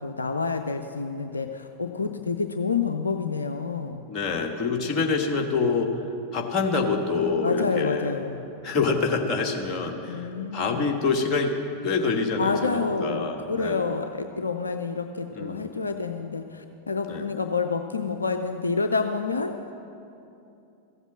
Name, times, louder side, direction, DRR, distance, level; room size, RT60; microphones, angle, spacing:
voice 1, 0.0-4.0 7.4-8.4 10.1-11.0 12.4-19.7, left 4 dB, 75° left, 6 dB, 0.5 m, -28 dB
voice 2, 4.1-6.0 6.3-8.2 8.6-10.3 10.5-11.6 11.8-13.9 15.3-15.7 17.1-17.2, left 4 dB, 30° left, 2 dB, 1.4 m, -26 dB
14.5 x 8.1 x 7.5 m, 2.8 s
figure-of-eight pair, 90°, 0 cm